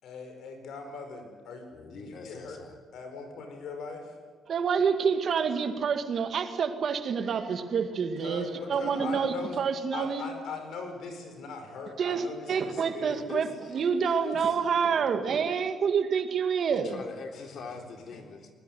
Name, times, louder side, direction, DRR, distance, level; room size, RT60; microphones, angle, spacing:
voice 1, 0.0-2.6 2.9-4.1 8.2-9.6 9.9-13.3 17.3-17.6 18.1-18.2, left 4 dB, 75° left, 5 dB, 5.8 m, -40 dB
voice 2, 1.7-2.8 8.6-9.0 13.2-14.6 16.7-18.5, left 4 dB, 60° left, 4 dB, 3.7 m, -43 dB
voice 3, 4.5-10.2 12.0-17.0, right 6 dB, 55° right, 7 dB, 2.2 m, -28 dB
21.0 x 20.0 x 9.5 m, 1.5 s
cardioid pair, 90°, 0 cm